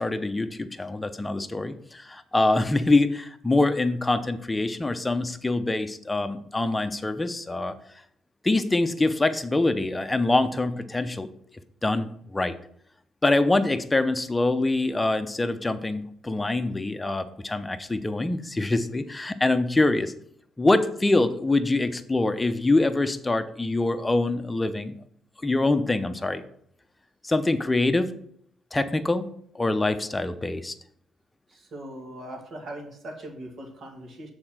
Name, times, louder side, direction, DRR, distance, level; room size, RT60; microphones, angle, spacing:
voice 1, 0.0-7.7 8.4-11.3 11.8-12.5 13.2-20.1 20.6-25.0 25.4-26.4 27.2-28.1 28.7-29.3 29.5-30.7, left 2 dB, 15° left, 9 dB, 0.7 m, -24 dB
voice 2, 31.5-34.3, right 1 dB, 55° right, 2 dB, 2.1 m, -40 dB
7.0 x 4.4 x 6.1 m, 0.67 s
cardioid pair, 90°, 0 cm